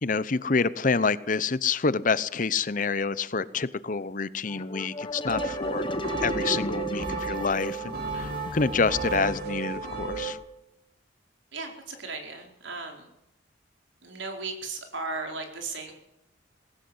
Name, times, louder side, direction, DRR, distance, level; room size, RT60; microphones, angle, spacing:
voice 1, 0.0-5.9 6.2-10.4, left 4 dB, 45° left, 17 dB, 0.8 m, -27 dB
sound 1, 4.5-9.9, left 1 dB, 25° left, 1.2 m, -35 dB
sound 2, 5.3-10.3, right 6 dB, 55° right, 4.2 m, -34 dB
voice 2, 11.5-13.1 14.0-15.9, right 3 dB, 80° right, 3 dB, 4.6 m, -36 dB
20.0 x 17.0 x 7.9 m, 0.85 s
head